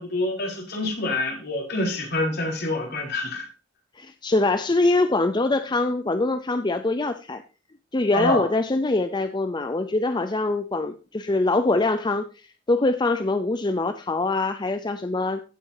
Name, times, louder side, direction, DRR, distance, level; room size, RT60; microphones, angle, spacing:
voice 1, 0.0-3.5 8.1-8.5, left 2 dB, 55° left, 0 dB, 4.3 m, -26 dB
voice 2, 4.0-7.4 7.9-12.3 12.7-15.4, left 2 dB, 25° left, 9 dB, 0.6 m, -23 dB
16.0 x 7.0 x 2.8 m, 0.33 s
head